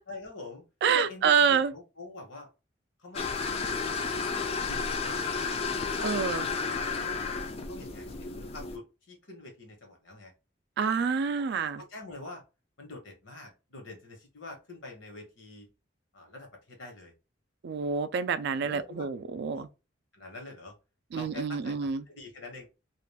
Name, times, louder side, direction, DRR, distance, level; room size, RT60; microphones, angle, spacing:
voice 1, 0.1-2.5 3.0-3.6 4.0-5.5 6.0-7.0 7.7-10.3 11.4-11.5 11.8-12.4 12.8-15.7 16.1-17.1 18.6-19.1 19.5-19.6 20.1-20.8 21.1-22.7, left 3 dB, 80° left, 1.2 m, -45 dB
voice 2, 0.8-1.7 6.0-6.4 10.8-11.8 17.6-19.7 21.1-22.0, right 6 dB, 60° right, 0.3 m, -27 dB
sound 1, 3.1-8.8, left 4 dB, 30° left, 0.3 m, -32 dB
2.4 x 2.3 x 3.3 m
head